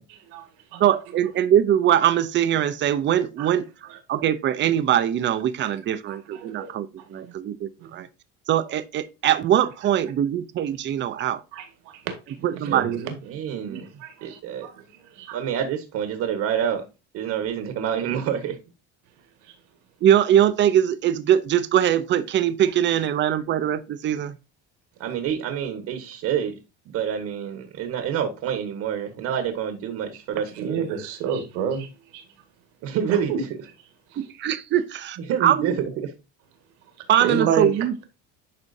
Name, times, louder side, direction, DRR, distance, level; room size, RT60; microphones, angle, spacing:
voice 1, 0.8-8.1 8.5-11.4 12.4-13.0 13.6-13.8 20.0-24.4 34.2-35.8 37.1-38.0, right 10 dB, 35° right, 0.6 m, -22 dB
voice 2, 12.7-13.1 14.0-14.7 15.2-15.4 30.6-31.9 32.1-32.2 33.3-33.4 37.2-37.7, right 6 dB, 85° right, 1.8 m, -27 dB
voice 3, 13.3-13.9 14.2-14.7 15.3-16.8 17.1-18.6 25.0-26.5 26.9-30.9 32.8-33.5 35.3-36.1, right 8 dB, 55° right, 1.3 m, -27 dB
11.0 x 4.3 x 2.7 m
cardioid pair, 135°, 31 cm